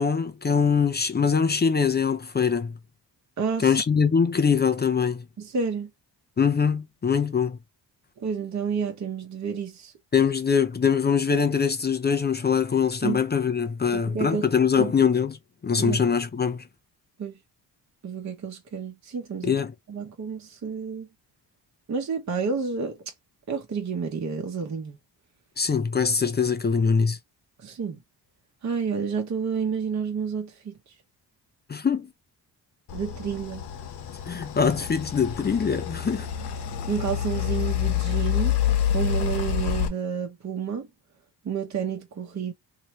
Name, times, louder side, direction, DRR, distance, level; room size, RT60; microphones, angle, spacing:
voice 1, 0.0-2.7 3.6-5.2 6.4-7.6 10.1-15.4 15.6-16.6 19.4-19.7 25.6-27.2 31.7-32.1 34.3-36.3, left 6 dB, 25° left, 0.5 m, -23 dB
voice 2, 3.4-3.8 5.4-5.9 8.2-9.9 13.0-13.2 13.9-14.5 14.8-14.9 15.8-16.0 17.2-17.4 18.0-19.5 19.9-21.1 21.9-23.0 23.5-25.0 27.6-28.0 28.6-30.7 32.9-33.6 36.9-38.6 38.9-40.9 41.4-42.5, right 6 dB, 40° right, 1.0 m, -30 dB
sound 1, 32.9-39.9, left 10 dB, 75° left, 1.0 m, -28 dB
3.2 x 2.8 x 3.0 m
cardioid pair, 90°, 41 cm